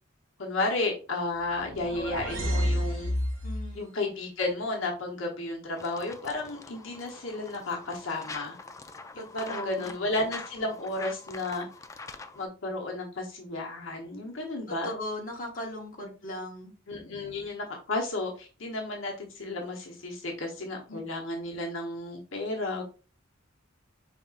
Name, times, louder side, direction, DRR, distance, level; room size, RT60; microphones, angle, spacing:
voice 1, 0.4-3.1 3.7-8.6 9.1-11.7 12.4-14.9 16.0-16.1 16.9-22.8, left 2 dB, 75° left, 0 dB, 1.0 m, -33 dB
sound 1, 1.4-3.7, equal, 70° right, 1.6 m, -30 dB
voice 2, 3.4-3.8 9.1-9.9 14.8-16.7 20.9-21.0, left 1 dB, 45° left, -1 dB, 1.1 m, -38 dB
sound 2, 5.7-12.5, left 3 dB, 15° left, 0.3 m, -45 dB
5.2 x 3.5 x 2.4 m, 0.34 s
head